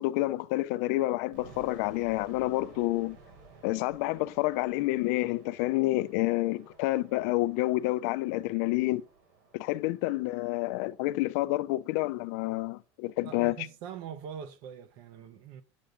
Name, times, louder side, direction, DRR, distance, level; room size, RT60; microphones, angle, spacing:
voice 1, 0.0-3.2 3.6-9.0 9.5-13.7, left 18 dB, 70° left, 0.5 m, -29 dB
sound 1, 1.3-12.2, right 4 dB, 75° right, 3.6 m, -56 dB
voice 2, 13.2-15.6, right 8 dB, 55° right, 1.0 m, -43 dB
8.7 x 8.2 x 3.8 m
cardioid pair, 160°, 9 cm